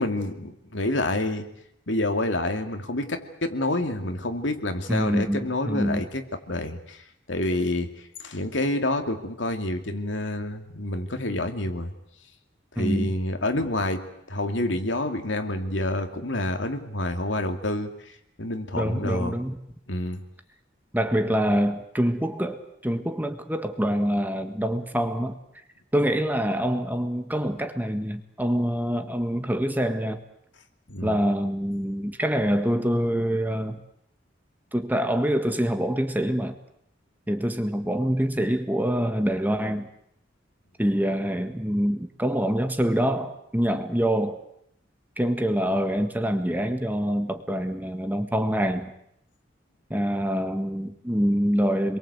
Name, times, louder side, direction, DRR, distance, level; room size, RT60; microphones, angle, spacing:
voice 1, 0.0-1.5 1.9-11.9 12.7-19.4 19.9-20.2 30.9-31.2, left 1 dB, 75° left, 6 dB, 2.6 m, -28 dB
voice 2, 4.9-6.0 12.7-13.1 18.7-19.6 20.9-25.4 25.9-30.2 31.0-33.8 34.7-36.6 37.3-39.9 40.8-44.4 45.2-48.9 49.9-52.0, equal, 10° right, 7 dB, 1.7 m, -25 dB
28.0 x 22.5 x 8.2 m, 0.74 s
head